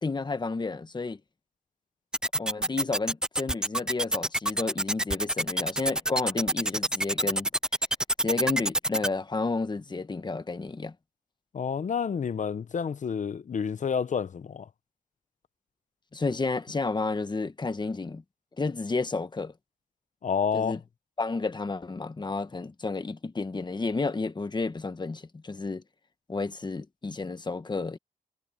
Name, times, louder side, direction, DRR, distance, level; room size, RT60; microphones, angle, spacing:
voice 1, 0.0-1.2 2.4-7.5 8.2-10.9 16.1-18.2 18.6-19.5 20.5-20.8 21.2-25.8 26.3-28.0, left 3 dB, 30° left, 1.2 m, -31 dB
sound 1, 2.1-9.1, right 1 dB, 5° right, 0.4 m, -26 dB
voice 2, 11.5-14.7 20.2-20.8, left 6 dB, 55° left, 0.8 m, -29 dB
wide cardioid pair, 95°, 15 cm